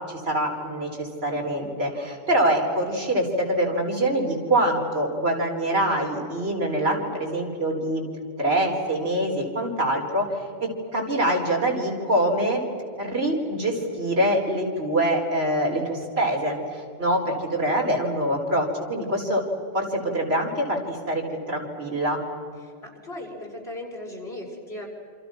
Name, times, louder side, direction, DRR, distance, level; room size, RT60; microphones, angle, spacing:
voice 1, 0.0-8.0 8.4-12.6 13.0-19.4 19.7-22.2, right 1 dB, 90° right, 0 dB, 4.8 m, -25 dB
voice 2, 22.6-24.9, left 1 dB, 85° left, -2 dB, 6.0 m, -37 dB
28.0 x 27.0 x 6.1 m, 2.2 s
omnidirectional pair, 1.0 m